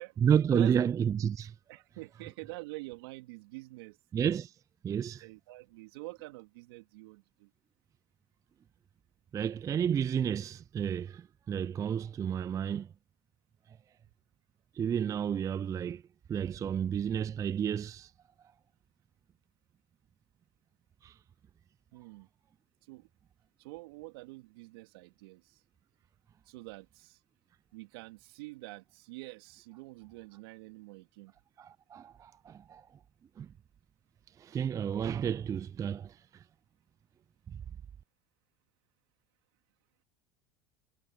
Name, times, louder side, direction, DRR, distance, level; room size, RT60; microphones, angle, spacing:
voice 1, 0.2-1.5 4.1-4.5 4.8-5.3 9.3-12.9 14.7-16.0 16.3-18.1 21.0-21.2 31.6-32.9 33.4-33.5 34.4-36.4 37.5-37.6, right 8 dB, 25° right, 0.3 m, -31 dB
voice 2, 1.7-4.0 5.2-7.5 21.9-22.3 22.9-23.1 23.6-25.6 26.4-27.2 27.7-31.3, right 23 dB, 75° right, 3.4 m, -46 dB
hypercardioid pair, 85°, 13 cm